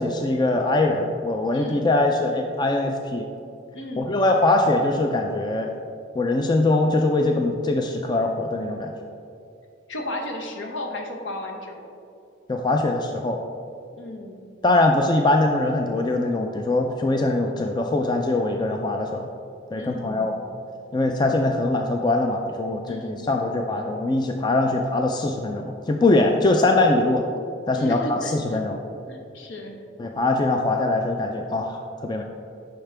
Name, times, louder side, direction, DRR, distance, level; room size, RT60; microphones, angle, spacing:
voice 1, 0.0-3.3 4.0-5.7 6.2-8.9 12.5-13.4 14.6-19.3 19.7-20.4 20.9-27.2 27.7-28.8 30.0-32.2, left 2 dB, 20° left, 3 dB, 0.3 m, -22 dB
voice 2, 1.5-1.9 3.7-4.1 9.9-11.9 13.9-14.4 19.7-20.3 22.9-23.3 27.7-28.6 29.1-29.8, left 1 dB, 70° left, 2 dB, 1.0 m, -34 dB
10.0 x 5.7 x 3.4 m, 2.5 s
head